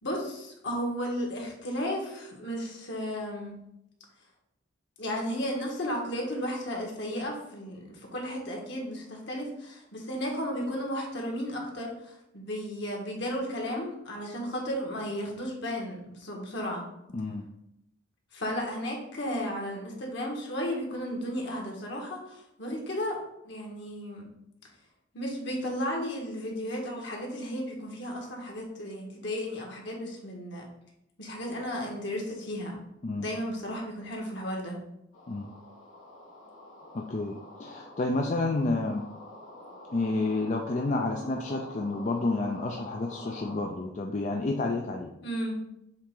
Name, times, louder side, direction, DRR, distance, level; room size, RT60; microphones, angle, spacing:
voice 1, 0.0-3.6 5.0-16.9 18.3-23.2 23.4-24.3 25.1-30.7 31.2-32.8 33.1-34.8 45.2-45.6, equal, 60° left, -1 dB, 1.6 m, -34 dB
voice 2, 17.1-17.4 33.0-33.3 35.3-35.5 36.9-39.1 39.9-45.1, left 2 dB, 35° left, 1 dB, 0.4 m, -30 dB
sound 1, 35.1-43.7, left 1 dB, 90° left, 2.1 m, -47 dB
7.3 x 3.7 x 3.8 m, 0.81 s
head